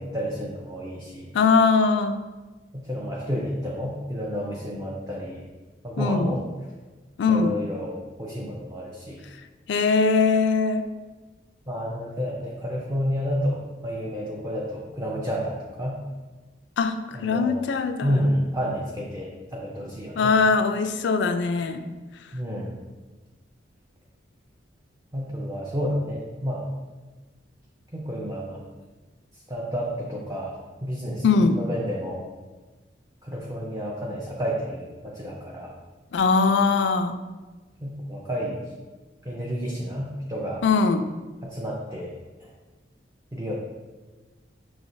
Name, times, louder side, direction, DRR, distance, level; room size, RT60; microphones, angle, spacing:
voice 1, 0.0-1.3 2.7-5.4 5.8-6.4 7.3-9.2 11.7-16.0 17.1-17.6 18.0-20.3 22.3-22.7 25.1-26.7 27.9-28.7 29.5-30.5 30.8-32.2 33.2-35.7 37.8-38.6 39.2-40.6 41.4-42.1 42.4-42.5 43.3-43.5, equal, 15° right, -5 dB, 0.4 m, -30 dB
voice 2, 1.3-2.2 6.0-6.4 7.2-7.6 9.7-10.9 16.8-18.2 20.2-21.8 31.2-31.6 36.1-37.2 40.6-41.1, left 4 dB, 65° left, 9 dB, 0.3 m, -21 dB
6.3 x 3.1 x 2.6 m, 1.3 s
head